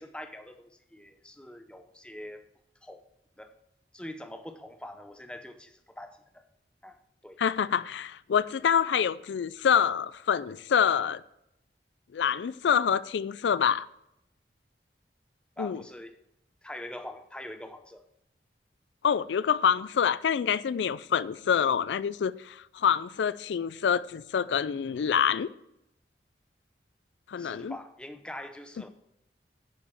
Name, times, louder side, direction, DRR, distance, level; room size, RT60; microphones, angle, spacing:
voice 1, 0.0-2.4 2.8-3.0 3.4-3.5 3.9-6.5 6.8-7.0 7.2-7.4 15.6-16.2 16.6-18.0 27.4-28.9, left 1 dB, 5° left, 0.7 m, -43 dB
voice 2, 7.4-11.2 12.1-13.9 15.6-15.8 19.0-25.5 27.3-27.7, left 7 dB, 90° left, 0.4 m, -26 dB
10.5 x 5.1 x 6.9 m
head